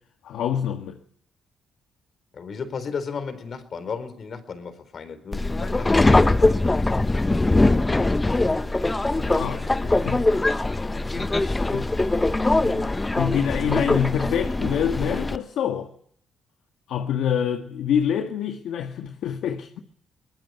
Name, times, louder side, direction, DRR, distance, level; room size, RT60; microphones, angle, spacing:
voice 1, 0.2-1.0 9.2-10.3 10.9-12.1 12.6-15.9 16.9-19.8, left 8 dB, 80° left, 1.8 m, -27 dB
voice 2, 2.3-6.9, left 5 dB, 50° left, 4.2 m, -34 dB
Subway metro underground, 5.3-15.4, left 2 dB, 15° left, 1.1 m, -22 dB
23.5 x 20.0 x 9.5 m
cardioid pair, 90°, 0 cm